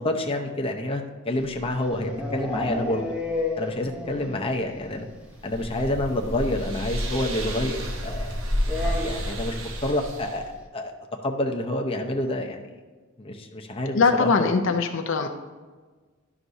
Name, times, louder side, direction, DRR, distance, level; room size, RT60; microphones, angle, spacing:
voice 1, 0.0-3.1 3.6-5.1 5.4-8.4 9.0-10.4 10.7-10.9 11.2-12.7 13.2-14.5, left 1 dB, 30° left, 2 dB, 0.7 m, -28 dB
sound 1, 1.4-4.4 4.7-4.8 5.1-5.2 5.5-5.6 6.8-6.9 8.6-9.5, left 2 dB, 5° right, 0.9 m, -31 dB
sound 2, 5.1-10.5, equal, 70° right, 1.0 m, -30 dB
voice 2, 13.9-15.3, left 4 dB, 70° left, 4 dB, 0.6 m, -21 dB
11.0 x 5.9 x 2.7 m, 1.4 s
head